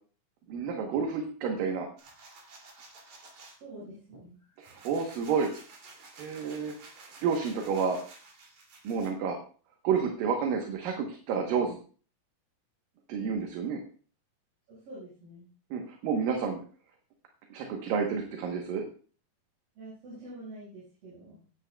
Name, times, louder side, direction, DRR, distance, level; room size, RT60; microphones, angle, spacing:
voice 1, 0.5-1.9 4.6-5.5 6.2-6.7 7.0-8.0 8.8-9.4 9.8-11.8 13.1-13.8 15.7-16.6 17.5-18.8, right 6 dB, 75° right, 3 dB, 2.8 m, -30 dB
sound 1, 2.0-3.6 4.1-9.1, right 3 dB, 55° right, 3.8 m, -52 dB
voice 2, 3.6-4.4 14.7-15.5 19.8-21.5, right 1 dB, 90° right, -9 dB, 7.1 m, -46 dB
17.0 x 9.7 x 2.3 m, 0.40 s
omnidirectional pair, 4.2 m